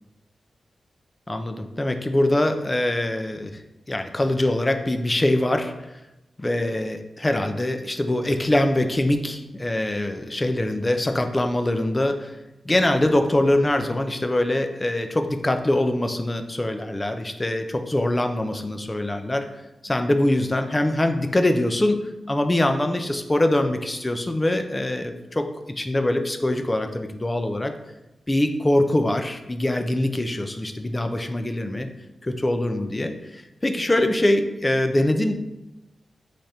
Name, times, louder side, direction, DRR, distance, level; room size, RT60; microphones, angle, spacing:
voice 1, 1.3-3.6 3.9-5.7 6.4-12.4 12.7-19.4 19.8-22.0 22.3-25.5 25.8-27.7 28.3-31.9 32.2-35.3, left 1 dB, 20° left, 6 dB, 0.3 m, -23 dB
3.3 x 2.5 x 4.1 m, 0.98 s
wide cardioid pair, 90°, 0 cm